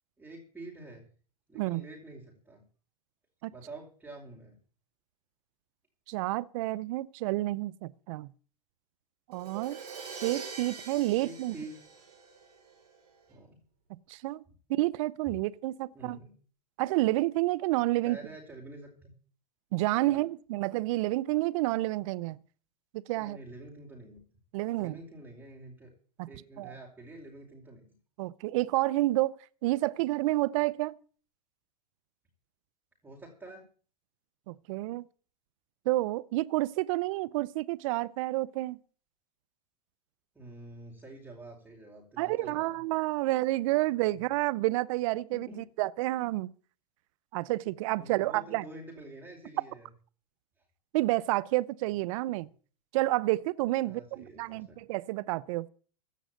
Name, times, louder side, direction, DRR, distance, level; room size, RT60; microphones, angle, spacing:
voice 1, 0.2-1.0 1.5-2.6 3.5-4.6 11.1-11.8 13.3-13.6 14.5-14.6 15.2-15.3 15.9-16.3 18.0-19.1 20.0-20.2 23.1-24.4 24.8-25.9 26.3-27.8 33.0-33.7 40.3-42.8 45.3-45.6 48.0-49.9 50.6-50.7 53.8-54.8, right 2 dB, 5° right, 5.1 m, -47 dB
voice 2, 6.1-8.3 9.3-9.8 10.2-11.6 13.9-14.4 14.7-16.2 16.8-18.2 19.7-22.4 22.9-23.4 24.5-25.0 26.2-26.3 26.6-26.7 28.2-29.3 29.6-30.9 34.5-35.1 35.9-38.8 42.2-46.5 47.3-48.6 50.9-52.5 52.9-55.7, right 18 dB, 55° right, 0.7 m, -29 dB
Crash cymbal, 9.3-13.1, right 5 dB, 75° right, 7.0 m, -44 dB
16.0 x 6.2 x 9.2 m
hypercardioid pair, 110°, 20 cm